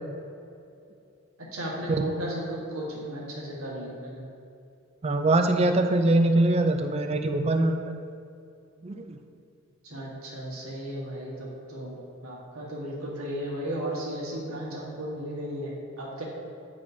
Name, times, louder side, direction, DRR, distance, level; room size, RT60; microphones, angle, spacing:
voice 1, 1.4-4.2 9.8-12.0 12.2-16.2, right 1 dB, 80° right, -4 dB, 1.5 m, -35 dB
voice 2, 5.0-7.9 8.8-9.1, right 2 dB, 30° right, 6 dB, 0.3 m, -23 dB
9.5 x 4.9 x 2.7 m, 2.5 s
head